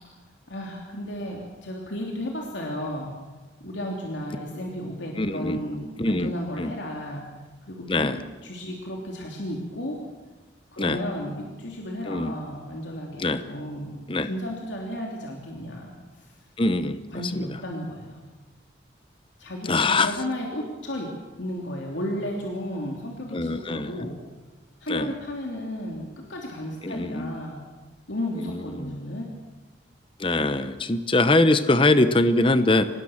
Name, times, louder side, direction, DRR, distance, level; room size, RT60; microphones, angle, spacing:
voice 1, 0.5-3.1 3.6-7.3 7.7-8.1 8.4-10.0 10.7-16.4 17.1-18.2 19.4-21.1 21.4-24.2 24.8-27.6 28.1-29.3, left 1 dB, 85° left, 0 dB, 3.2 m, -33 dB
voice 2, 5.2-5.6 6.0-6.3 6.6-6.7 7.9-8.2 10.8-11.0 12.1-12.3 13.2-13.4 14.1-14.3 16.6-17.0 17.3-17.4 19.7-20.1 23.3-23.9 24.9-25.1 26.8-27.4 28.4-28.9 30.2-32.9, left 2 dB, 30° left, 11 dB, 0.9 m, -22 dB
26.0 x 19.0 x 7.3 m, 1.2 s
head